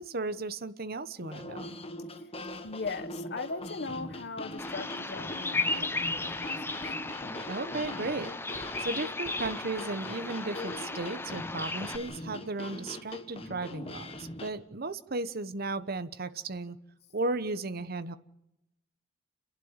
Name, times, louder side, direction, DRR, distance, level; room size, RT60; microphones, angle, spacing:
voice 1, 0.0-1.8 7.5-8.3 8.8-16.8 17.1-18.2, right 2 dB, 50° right, 12 dB, 1.1 m, -35 dB
sound 1, 1.2-14.5, left 1 dB, 30° left, 1.5 m, -42 dB
voice 2, 2.6-6.8, left 4 dB, 55° left, 10 dB, 1.4 m, -39 dB
Bird vocalization bird call bird song, 4.6-12.0, left 3 dB, 10° left, 0.9 m, -35 dB
30.0 x 11.5 x 8.9 m, 0.89 s
head